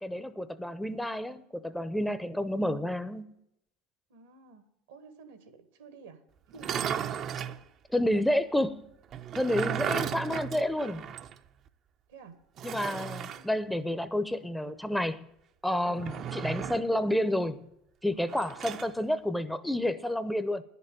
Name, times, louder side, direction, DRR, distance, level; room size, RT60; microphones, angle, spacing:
voice 1, 0.0-3.3 7.9-8.9 9.3-11.1 12.6-15.3 15.6-17.7 18.0-20.6, left 1 dB, 5° left, 0.7 m, -30 dB
voice 2, 4.1-6.2 6.5-7.0 8.0-8.2 12.1-12.4 13.4-13.5 15.8-16.4, right 5 dB, 80° right, 1.4 m, -50 dB
sound 1, 6.5-7.6 9.1-11.4 11.7-11.8 12.6-13.5 15.9-16.9 18.3-18.9, right 9 dB, 45° right, 0.6 m, -35 dB
10.0 x 6.8 x 9.1 m
hypercardioid pair, 80°, 0 cm